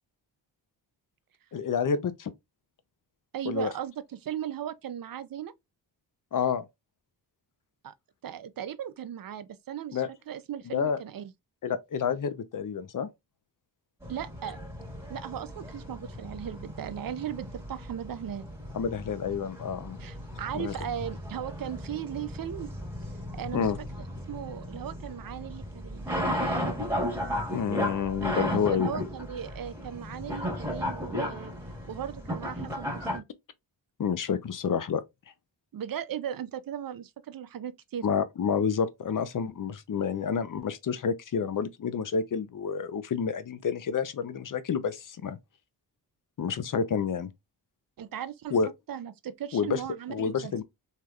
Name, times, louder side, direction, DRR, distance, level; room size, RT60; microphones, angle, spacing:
voice 1, 1.5-2.3 3.5-3.7 6.3-6.7 9.9-10.1 10.7-11.0 11.6-13.1 18.7-20.0 20.5-20.7 23.5-23.8 27.5-28.9 34.0-35.0 38.0-45.4 46.4-47.3 48.5-48.7 49.5-49.8 50.1-50.6, left 6 dB, 45° left, 0.6 m, -29 dB
voice 2, 3.3-5.5 7.8-7.9 8.2-11.3 14.1-14.7 15.1-18.5 20.0-22.7 23.3-23.7 24.3-26.1 28.3-31.5 31.9-33.2 35.7-38.1 48.0-48.6 48.9-50.6, right 10 dB, 50° right, 0.5 m, -37 dB
sound 1, 14.0-33.2, equal, 5° right, 1.4 m, -35 dB
3.3 x 2.7 x 2.3 m
cardioid pair, 55°, 44 cm